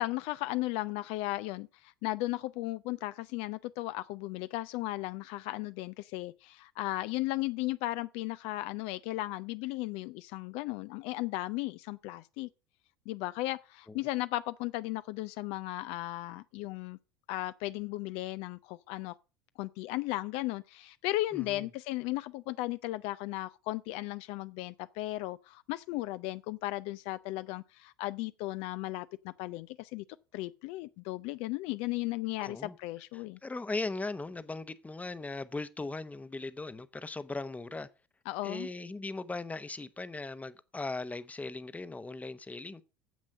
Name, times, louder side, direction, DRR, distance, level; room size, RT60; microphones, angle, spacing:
voice 1, 0.0-12.5 13.1-17.0 17.3-19.2 19.6-30.0 30.3-33.4 38.3-38.7, left 18 dB, 60° left, 0.5 m, -36 dB
voice 2, 21.3-21.7 32.4-32.7 33.1-37.9 38.4-42.8, left 3 dB, 10° left, 0.9 m, -39 dB
9.3 x 7.5 x 6.4 m
hypercardioid pair, 75°, 12 cm